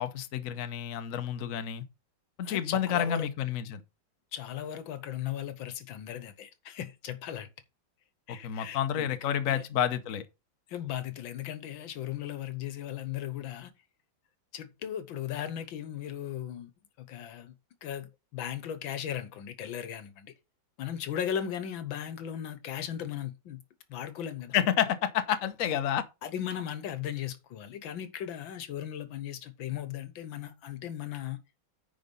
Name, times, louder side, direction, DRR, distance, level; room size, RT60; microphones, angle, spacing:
voice 1, 0.0-1.8 2.4-3.8 8.3-10.2 24.5-26.0, left 9 dB, 50° left, 1.1 m, -29 dB
voice 2, 2.4-3.3 4.3-7.5 8.3-9.6 10.7-13.7 14.5-16.7 17.0-17.5 17.8-20.3 20.8-23.6 23.9-24.5 26.2-31.4, left 10 dB, 80° left, 1.8 m, -37 dB
9.6 x 5.0 x 5.3 m
omnidirectional pair, 2.1 m